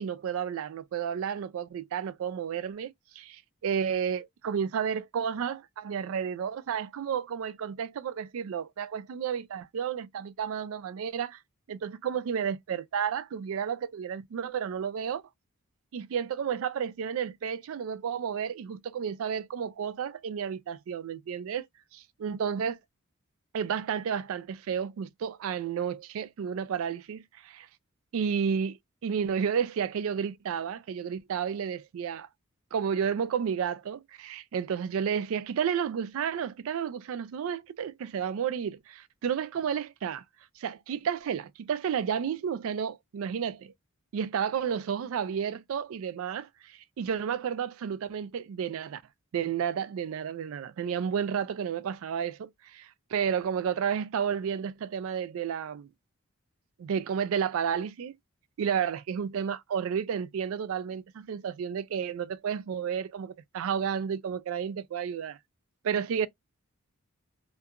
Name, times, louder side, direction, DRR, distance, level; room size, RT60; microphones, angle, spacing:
voice 1, 0.0-11.4 11.7-15.2 15.9-21.7 21.9-22.8 23.5-27.7 28.1-28.8 29.0-32.3 32.7-40.2 40.6-43.7 44.1-49.0 49.3-55.9 56.8-58.1 58.6-65.4 65.8-66.3, right 7 dB, 65° right, 0.3 m, -31 dB
2.7 x 2.3 x 2.3 m
head